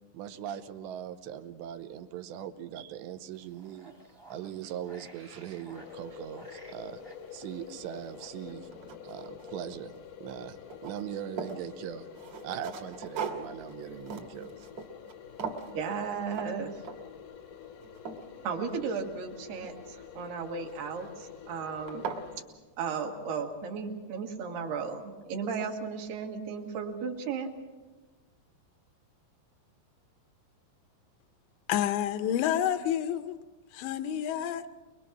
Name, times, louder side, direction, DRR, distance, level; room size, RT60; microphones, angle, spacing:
voice 1, 0.1-3.9 4.3-7.0 7.3-8.7 9.0-9.9 10.2-12.1 12.4-14.6, right 10 dB, 85° right, 3.1 m, -40 dB
sound 1, 3.3-8.5, right 1 dB, 25° right, 0.7 m, -55 dB
sound 2, 5.7-22.4, left 8 dB, 70° left, 1.9 m, -48 dB
sound 3, 8.0-8.1 8.5-10.0 10.3-11.6 12.1-15.1 15.4-15.7 16.3-16.5 16.8-17.2 17.6-19.2 20.7-21.1 21.5-21.6 21.9-22.3, right 5 dB, 50° right, 2.3 m, -40 dB
voice 2, 15.7-16.7 18.4-22.1 22.8-27.5, right 5 dB, 70° right, 3.5 m, -35 dB
voice 3, 31.7-33.4 33.7-34.6, left 10 dB, 85° left, 3.1 m, -29 dB
23.0 x 22.5 x 6.1 m
omnidirectional pair, 5.0 m